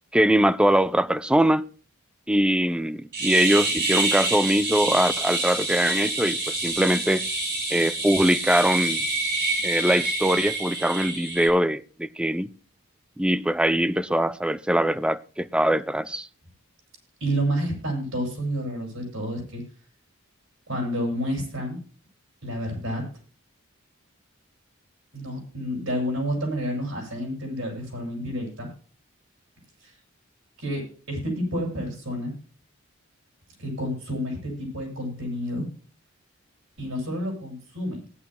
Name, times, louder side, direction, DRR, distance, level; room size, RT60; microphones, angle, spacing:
voice 1, 0.1-1.7 2.3-7.3 7.7-9.0 9.6-12.5 13.2-16.3, right 1 dB, 5° right, 0.5 m, -22 dB
sound 1, 3.1-11.5, right 2 dB, 60° right, 4.3 m, -27 dB
voice 2, 17.2-19.6 20.7-21.8 22.4-23.0 25.1-28.7 29.8-29.9 30.6-30.8 31.1-32.3 33.6-35.7 36.8-38.0, equal, 75° right, 7.2 m, -29 dB
19.0 x 10.5 x 2.2 m
head